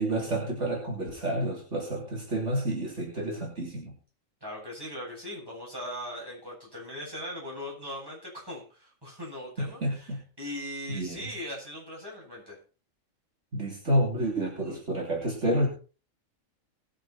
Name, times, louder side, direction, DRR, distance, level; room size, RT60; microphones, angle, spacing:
voice 1, 0.0-3.9 9.6-10.2 10.9-11.2 13.5-15.7, right 1 dB, 55° right, -2 dB, 3.8 m, -29 dB
voice 2, 4.4-12.6 14.6-14.8, equal, 15° right, -4 dB, 7.9 m, -40 dB
20.5 x 7.6 x 4.4 m, 0.36 s
omnidirectional pair, 1.5 m